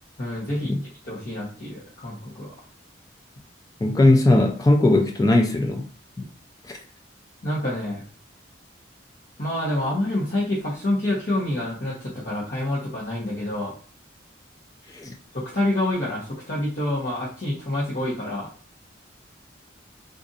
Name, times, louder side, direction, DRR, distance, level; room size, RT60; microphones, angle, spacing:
voice 1, 0.2-0.7 1.0-2.5 7.4-8.0 9.4-13.7 15.3-18.5, left 1 dB, 55° left, 1.0 m, -27 dB
voice 2, 3.8-5.9 6.6-6.8 14.9-15.1, left 2 dB, 20° left, 0.3 m, -19 dB
2.5 x 2.5 x 3.9 m
head